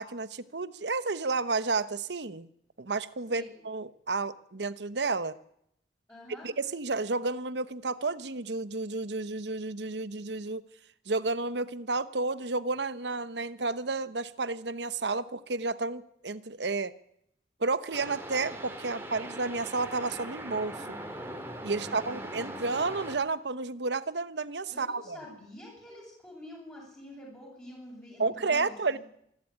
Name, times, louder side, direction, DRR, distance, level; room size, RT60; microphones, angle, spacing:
voice 1, 0.0-2.5 2.8-5.4 6.4-10.6 11.1-16.9 17.6-21.0 21.6-25.2 28.2-29.0, right 3 dB, 70° right, 15 dB, 1.1 m, -31 dB
voice 2, 3.3-3.6 6.1-6.5 18.9-19.2 21.6-22.8 24.7-29.0, left 1 dB, 15° left, -6 dB, 7.9 m, -48 dB
sound 1, 17.9-23.2, right 1 dB, 15° right, 3.2 m, -41 dB
26.0 x 12.0 x 10.0 m, 0.74 s
head